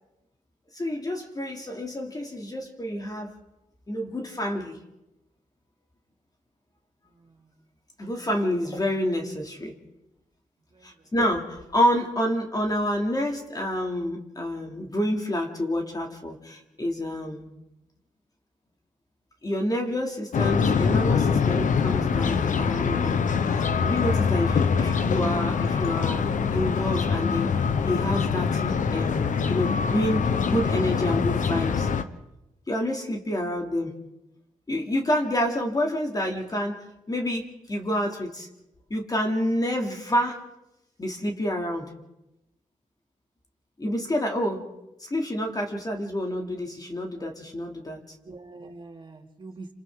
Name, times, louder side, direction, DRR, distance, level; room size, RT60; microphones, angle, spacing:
voice 1, 0.7-3.3 3.9-4.8 8.0-9.7 10.8-17.5 19.4-23.2 23.5-26.2 26.5-27.5 27.9-31.9 32.7-33.9 34.7-36.8 37.1-38.5 38.9-40.4 41.0-41.9 43.8-44.7 45.0-48.0, left 1 dB, 30° left, 1 dB, 3.0 m, -28 dB
voice 2, 10.7-11.1 48.2-49.7, right 3 dB, 35° right, 2 dB, 2.8 m, -45 dB
sound 1, 20.3-32.0, left 6 dB, 70° left, 1.2 m, -24 dB
28.5 x 26.5 x 4.0 m, 0.91 s
cardioid pair, 80°, 14 cm